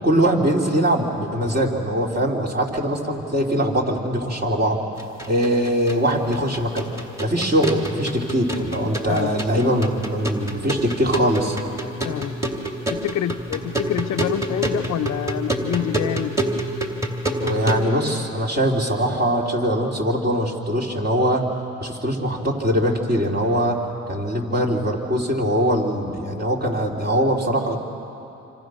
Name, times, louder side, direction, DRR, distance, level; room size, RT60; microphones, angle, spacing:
voice 1, 0.0-4.8 5.3-11.6 17.4-21.4 21.8-23.8 24.1-27.8, equal, 35° right, 0 dB, 3.6 m, -22 dB
sound 1, 5.0-17.8, right 1 dB, 10° right, 2.8 m, -28 dB
voice 2, 12.0-12.4 12.9-16.3, left 11 dB, 65° left, 10 dB, 0.7 m, -26 dB
27.0 x 25.5 x 6.5 m, 2.8 s
cardioid pair, 90°, 30 cm